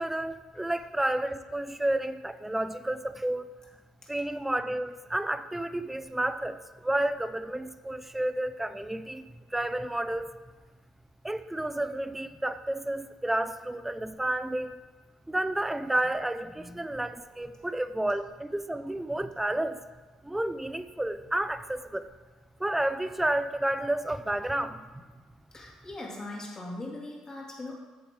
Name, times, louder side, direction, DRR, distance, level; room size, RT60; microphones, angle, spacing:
voice 1, 0.0-3.5 4.1-9.3 9.5-10.4 11.2-14.8 15.3-19.8 20.2-22.1 22.6-24.9, right 1 dB, 10° right, 13 dB, 0.5 m, -31 dB
voice 2, 25.5-27.7, left 2 dB, 30° left, -3 dB, 2.9 m, -40 dB
9.4 x 6.9 x 3.8 m, 1.3 s
hypercardioid pair, 60°, 2 cm